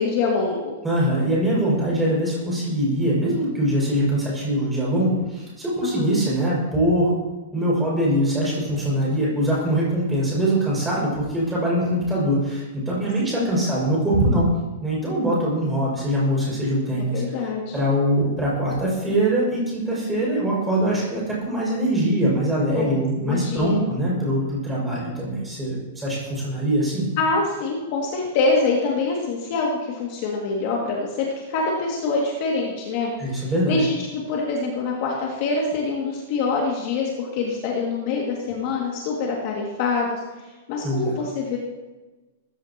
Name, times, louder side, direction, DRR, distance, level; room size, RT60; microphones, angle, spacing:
voice 1, 0.0-0.8 5.8-6.1 13.4-13.6 17.0-17.7 22.7-23.8 27.2-33.1 33.4-34.0 34.3-41.6, left 4 dB, 35° left, -2 dB, 2.4 m, -25 dB
voice 2, 0.8-7.2 7.5-14.5 14.8-27.1 33.2-33.8 40.8-41.1, right 1 dB, 5° right, -5 dB, 6.2 m, -23 dB
21.0 x 15.5 x 3.0 m, 1.1 s
supercardioid pair, 180°, 0 cm